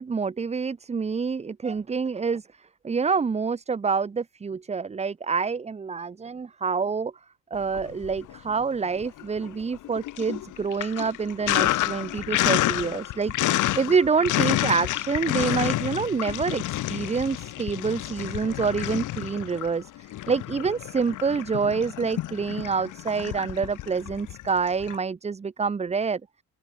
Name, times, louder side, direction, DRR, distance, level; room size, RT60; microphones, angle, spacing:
voice 1, 0.0-2.5 2.8-7.1 7.5-26.2, right 5 dB, 20° right, 0.6 m, -27 dB
Sink (filling or washing), 7.6-8.5 8.9-25.0, left 15 dB, 85° left, 3.9 m, -29 dB
open air
cardioid pair, 90°, 30 cm